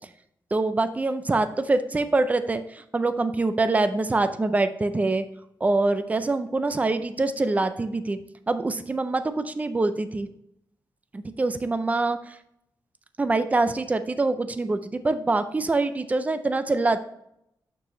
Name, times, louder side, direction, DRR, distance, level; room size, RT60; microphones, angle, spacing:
voice 1, 0.5-5.2 5.6-8.2 8.5-10.3 11.1-12.4 13.2-17.0, right 3 dB, 20° right, 10 dB, 0.4 m, -24 dB
6.7 x 6.5 x 3.1 m, 0.76 s
wide cardioid pair, 155°, 8 cm